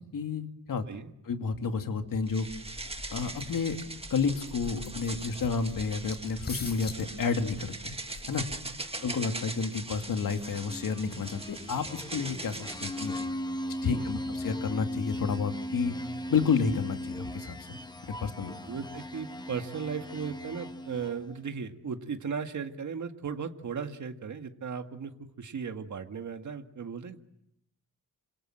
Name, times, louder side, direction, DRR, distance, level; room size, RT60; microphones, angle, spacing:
voice 1, 0.1-0.8 1.3-2.5 3.1-3.8 4.1-7.9 8.3-8.4 9.0-13.1 13.8-16.0 16.3-17.7 18.1-18.5, left 5 dB, 75° left, 6 dB, 2.7 m, -30 dB
sound 1, 2.2-8.9, left 3 dB, 30° left, 3.9 m, -45 dB
sound 2, 2.3-13.3, right 2 dB, 15° right, 1.8 m, -41 dB
sound 3, 10.4-21.3, left 1 dB, 10° left, 1.1 m, -38 dB
voice 2, 18.6-27.2, right 6 dB, 60° right, 6 dB, 1.9 m, -37 dB
29.0 x 26.5 x 7.6 m, 0.77 s
wide cardioid pair, 135°, 34 cm